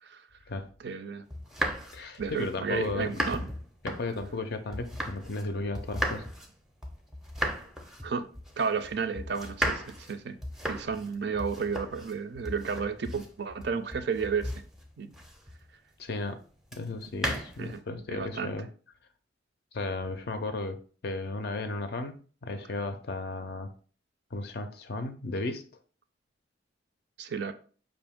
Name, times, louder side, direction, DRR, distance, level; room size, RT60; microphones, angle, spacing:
voice 1, 0.8-1.2 2.2-3.5 8.0-8.3 8.6-10.4 10.7-14.5 15.0-15.1 17.6-18.6 27.2-27.5, right 5 dB, 60° right, 0.4 m, -32 dB
sound 1, 1.3-5.5 5.7-15.7 16.7-17.8, equal, ahead, 0.5 m, -36 dB
voice 2, 1.9-3.2 3.8-6.2 16.0-16.4 16.7-18.7 19.7-23.7 24.3-25.6, left 2 dB, 55° left, 0.4 m, -34 dB
5.2 x 2.6 x 3.5 m
head